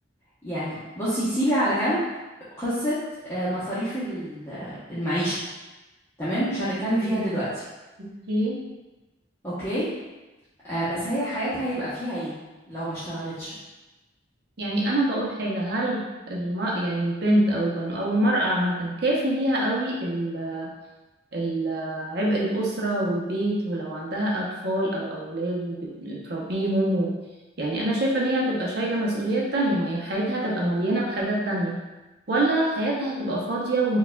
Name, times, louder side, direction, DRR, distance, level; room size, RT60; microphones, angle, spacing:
voice 1, 0.4-2.0 2.6-3.0 3.3-5.4 6.2-7.5 9.4-9.9 10.6-12.3 12.7-13.5, equal, 15° left, -13 dB, 0.8 m, -27 dB
voice 2, 8.0-8.6 14.6-20.7 21.3-27.1 27.6-31.8 32.3-34.0, right 1 dB, 55° right, -4 dB, 0.7 m, -25 dB
4.6 x 2.3 x 2.2 m, 1.1 s
head